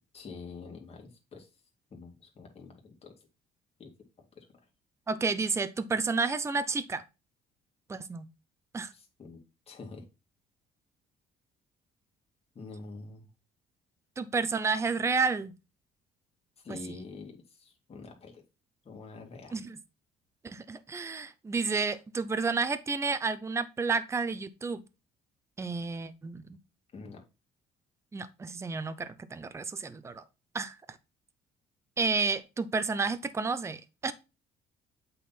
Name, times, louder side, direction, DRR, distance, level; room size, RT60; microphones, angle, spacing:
voice 1, 0.1-1.5 1.9-3.1 3.8-3.9 4.4-4.5 8.9-9.4 9.7-10.0 12.5-13.3 16.6-18.4 18.8-19.5 26.9-27.2, left 4 dB, 35° left, 2.3 m, -46 dB
voice 2, 5.1-7.0 7.9-8.3 8.7-8.9 14.2-15.5 16.7-16.8 19.5-19.8 20.4-24.8 25.6-26.4 28.1-30.2 30.5-30.8 32.0-34.1, right 4 dB, 15° right, 0.6 m, -31 dB
8.2 x 4.0 x 4.3 m
cardioid pair, 110°, 17 cm